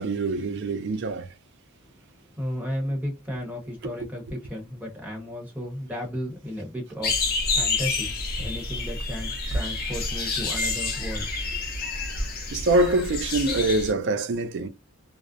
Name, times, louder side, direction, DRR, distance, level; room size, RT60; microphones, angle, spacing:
voice 1, 0.0-1.3 12.5-14.7, right 2 dB, 55° right, 0.4 m, -24 dB
voice 2, 2.3-11.7, equal, 5° right, 1.0 m, -34 dB
sound 1, 7.0-13.9, left 3 dB, 45° left, 0.8 m, -28 dB
2.5 x 2.0 x 2.4 m
head